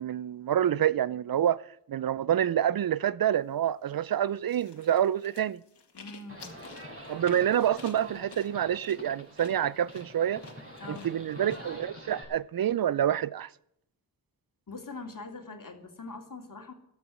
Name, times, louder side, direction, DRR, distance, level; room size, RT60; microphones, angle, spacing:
voice 1, 0.0-1.6 1.9-5.6 7.1-10.4 10.9-13.5, right 10 dB, 50° right, 0.5 m, -27 dB
sound 1, 4.5-11.6, left 5 dB, 60° left, 2.1 m, -51 dB
voice 2, 5.9-6.6 10.8-11.1 14.7-16.7, left 3 dB, 45° left, 2.5 m, -43 dB
Livestock farm animals working animals, 6.3-12.2, equal, 30° right, 6.2 m, -46 dB
13.5 x 11.0 x 6.3 m
cardioid pair, 45°, 45 cm